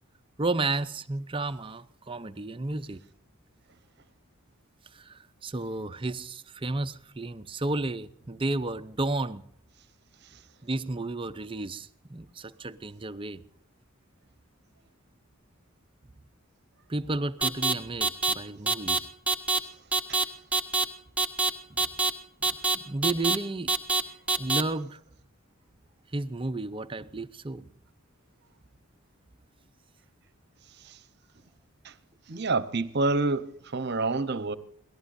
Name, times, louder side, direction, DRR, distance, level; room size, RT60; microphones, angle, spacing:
voice 1, 0.4-3.0 4.9-9.4 10.6-13.4 16.9-19.1 21.7-21.9 22.4-23.7 24.4-25.0 26.1-27.7, right 2 dB, 25° right, 0.6 m, -32 dB
sound 1, 17.4-17.7 18.0-18.3 18.7-19.0 19.3-19.6 19.9-20.2 20.5-20.8 21.2-21.5 21.8-22.1 22.4-22.7 23.0-23.4 23.7-24.0 24.3-24.6, right 4 dB, 5° right, 1.1 m, -24 dB
voice 2, 32.3-34.6, right 3 dB, 55° right, 0.9 m, -28 dB
26.0 x 18.5 x 2.6 m
head